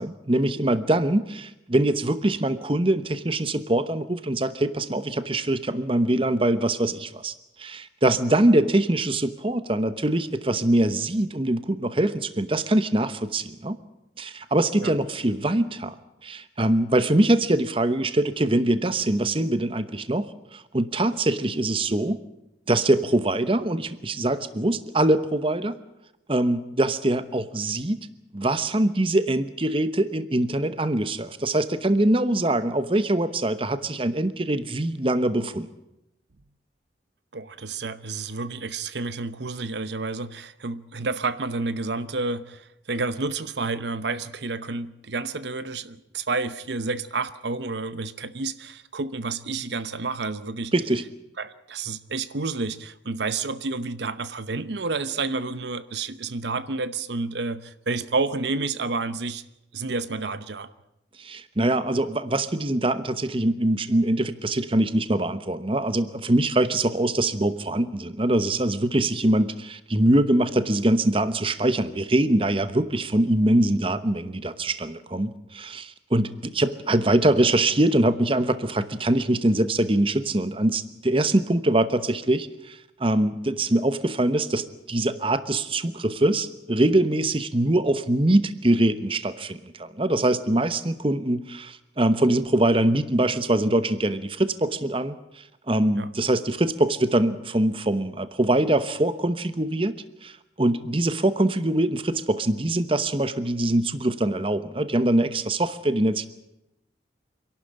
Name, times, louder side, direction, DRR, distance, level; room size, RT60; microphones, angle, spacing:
voice 1, 0.0-13.8 14.2-16.0 16.2-22.2 22.7-25.8 26.3-28.1 28.3-35.7 50.7-51.0 61.2-100.0 100.2-106.3, right 1 dB, 30° right, 1.0 m, -23 dB
voice 2, 37.3-50.7 51.4-59.4 59.7-60.7 95.9-96.1, right 3 dB, 70° right, 0.8 m, -30 dB
26.5 x 12.0 x 10.0 m
head